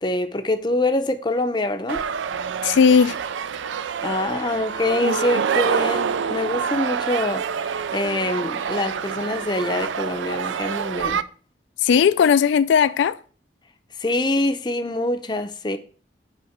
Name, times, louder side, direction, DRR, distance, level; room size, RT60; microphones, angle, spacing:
voice 1, 0.0-2.0 4.0-7.4 7.9-11.2 14.0-15.8, left 2 dB, 25° left, 0.5 m, -25 dB
sound 1, 1.9-11.2, right 7 dB, 85° right, 0.4 m, -27 dB
voice 2, 2.6-3.2 5.0-5.5 11.8-13.2, left 6 dB, 80° left, 0.3 m, -17 dB
5.6 x 5.0 x 6.6 m
head